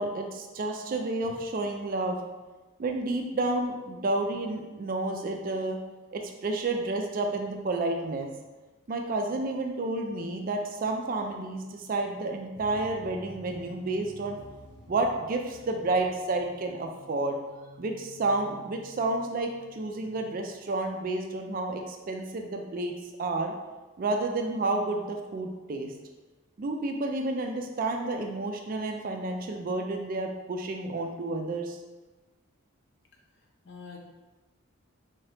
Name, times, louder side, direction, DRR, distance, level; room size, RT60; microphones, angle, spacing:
voice 1, 0.0-2.2 2.8-5.8 6.1-8.3 8.9-14.4 14.9-17.4 17.8-22.9 23.2-23.5 24.0-25.9 26.6-31.8, right 2 dB, 40° right, 3 dB, 0.3 m, -30 dB
sound 1, 12.5-20.4, left 1 dB, 25° right, 0.8 m, -51 dB
voice 2, 33.3-34.0, left 5 dB, 55° left, 0 dB, 0.6 m, -47 dB
3.5 x 2.8 x 3.3 m, 1.2 s
head